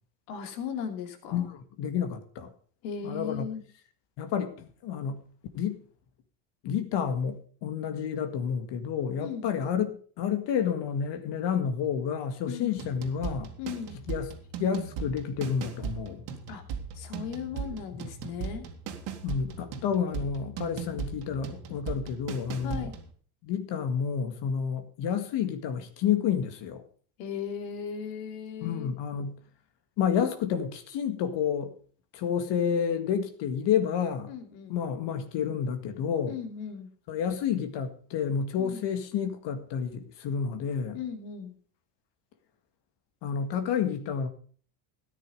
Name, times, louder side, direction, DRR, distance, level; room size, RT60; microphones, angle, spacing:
voice 1, 0.3-1.5 2.8-3.6 9.2-9.5 12.5-12.7 13.6-14.0 16.5-16.6 16.9-18.6 22.6-22.9 27.2-28.9 34.3-34.8 36.3-36.9 38.6-38.8 40.9-41.6, left 7 dB, 80° left, 2.9 m, -37 dB
voice 2, 1.3-2.5 3.0-3.5 4.2-5.2 5.5-5.8 6.6-9.9 10.2-13.5 14.1-14.3 14.6-16.3 17.9-18.1 19.2-22.9 23.4-26.8 28.6-29.4 30.0-31.7 32.1-34.4 34.7-36.4 37.1-41.0 43.2-44.3, left 7 dB, 60° left, 2.0 m, -30 dB
sound 1, 12.8-23.1, right 6 dB, 65° right, 2.4 m, -38 dB
13.5 x 10.0 x 5.3 m
supercardioid pair, 105°, 47 cm